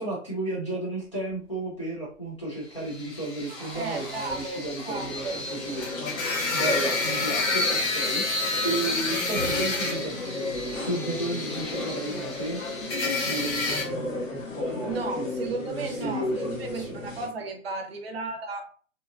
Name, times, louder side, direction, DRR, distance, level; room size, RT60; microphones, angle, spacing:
voice 1, 0.0-6.2 6.5-8.2 8.6-12.6 13.0-17.0, right 2 dB, 25° left, 0.4 m, -33 dB
sound 1, 1.1-1.7 2.1-2.5 3.0-5.6 6.4-7.6, right 1 dB, ahead, 0.7 m, -46 dB
sound 2, 2.9-13.8, left 3 dB, 55° left, 0.9 m, -30 dB
voice 2, 3.7-5.4 14.8-18.7, right 3 dB, 50° right, 0.6 m, -34 dB
sound 3, 4.9-17.3, left 2 dB, 75° left, 1.1 m, -34 dB
2.8 x 2.4 x 2.3 m
hypercardioid pair, 160°, 40 cm